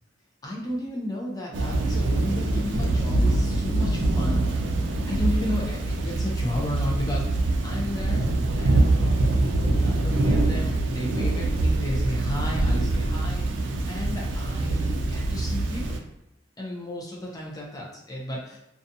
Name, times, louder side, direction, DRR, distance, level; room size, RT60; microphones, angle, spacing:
voice 1, 0.4-4.5 5.1-8.2 8.6-16.0 16.6-18.6, left 1 dB, 20° left, -2 dB, 0.4 m, -34 dB
Thunder / Rain, 1.5-16.0, right 2 dB, 80° right, 0.4 m, -24 dB
2.5 x 2.3 x 2.6 m, 0.89 s
head